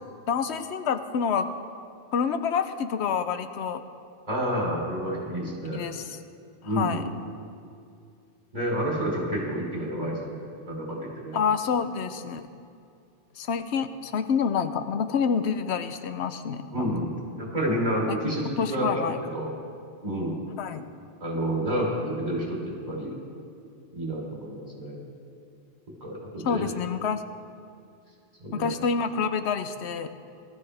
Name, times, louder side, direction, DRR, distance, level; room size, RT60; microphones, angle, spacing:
voice 1, 0.3-1.5 2.1-3.8 5.7-6.2 6.6-7.0 11.3-12.5 13.4-16.9 18.6-19.2 20.6-20.8 26.4-27.2 28.5-30.1, left 6 dB, 90° left, 10 dB, 1.0 m, -27 dB
voice 2, 4.3-5.8 6.6-7.0 8.5-10.2 10.7-11.4 16.7-19.5 20.0-20.4 21.2-23.1 23.9-25.0 26.0-26.6 28.4-28.7, equal, 40° right, -3 dB, 3.4 m, -29 dB
19.5 x 13.0 x 3.3 m, 2.4 s
omnidirectional pair, 1.1 m